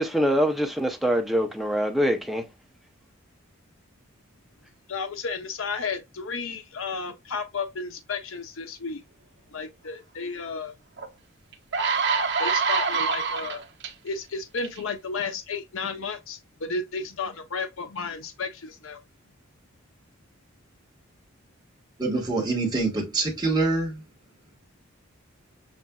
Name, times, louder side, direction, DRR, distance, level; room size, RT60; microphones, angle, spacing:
voice 1, 0.0-2.5, equal, ahead, 0.6 m, -24 dB
voice 2, 4.9-9.0 9.5-10.7 12.4-13.6 14.0-19.0, left 4 dB, 70° left, 0.6 m, -33 dB
sound 1, 11.0-11.1 11.5-13.9 14.6-14.8, right 5 dB, 55° right, 0.9 m, -25 dB
voice 3, 22.0-24.0, right 3 dB, 20° right, 1.5 m, -25 dB
7.2 x 2.5 x 2.3 m
head